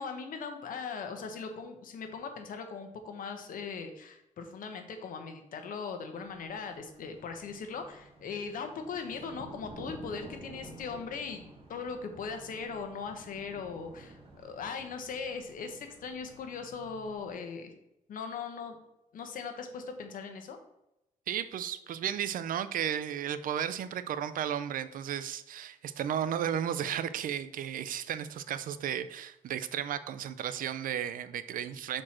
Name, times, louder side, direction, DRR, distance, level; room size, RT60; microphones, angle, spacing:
voice 1, 0.0-11.4 11.7-17.7 18.1-18.8 19.1-20.6, left 5 dB, 75° left, 6 dB, 1.0 m, -39 dB
sound 1, 6.2-17.3, right 2 dB, 40° right, 1.4 m, -51 dB
voice 2, 21.3-32.0, right 9 dB, 80° right, 13 dB, 0.5 m, -34 dB
6.1 x 4.4 x 4.3 m, 0.86 s
cardioid pair, 125°, 14 cm